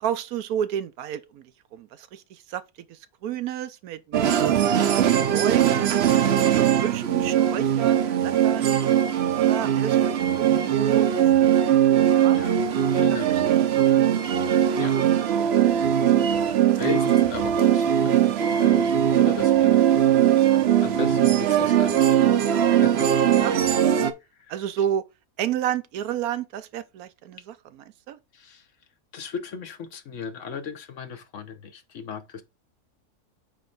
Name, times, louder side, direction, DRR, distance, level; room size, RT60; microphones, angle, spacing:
voice 1, 0.0-2.6 2.9-4.7 5.0-8.8 9.4-11.1 12.1-12.4 13.3-13.8 14.7-15.5 16.8-16.9 21.6-21.7 22.0-22.3 23.3-24.0 24.5-25.0 25.4-28.2, right 10 dB, 85° right, 1.1 m, -31 dB
sound 1, 4.1-24.1, right 10 dB, 55° right, 0.8 m, -20 dB
voice 2, 12.3-13.7 14.4-15.0 15.5-15.7 16.8-19.8 20.8-22.0 22.5-23.1 24.4-24.6 28.3-28.7 29.1-32.4, left 6 dB, 60° left, 1.1 m, -37 dB
8.8 x 3.2 x 4.0 m
omnidirectional pair, 1.5 m